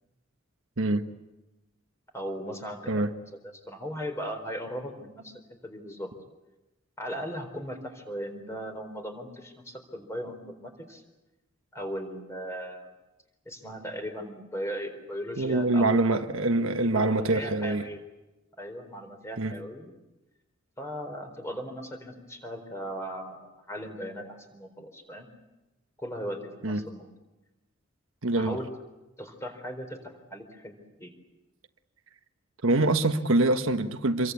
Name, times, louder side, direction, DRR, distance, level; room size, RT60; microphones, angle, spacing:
voice 1, 2.1-3.4 3.7-6.1 7.0-11.0 11.7-12.9 13.5-16.2 16.8-18.0 18.6-19.9 20.8-25.3 26.0-27.1 28.3-28.7 29.2-31.1, equal, 15° left, 5 dB, 4.1 m, -38 dB
voice 2, 15.4-17.9 19.4-19.5 26.6-26.8 28.2-28.6 32.6-34.3, right 2 dB, 70° right, 7 dB, 1.3 m, -24 dB
27.5 x 23.0 x 8.4 m, 1.0 s
head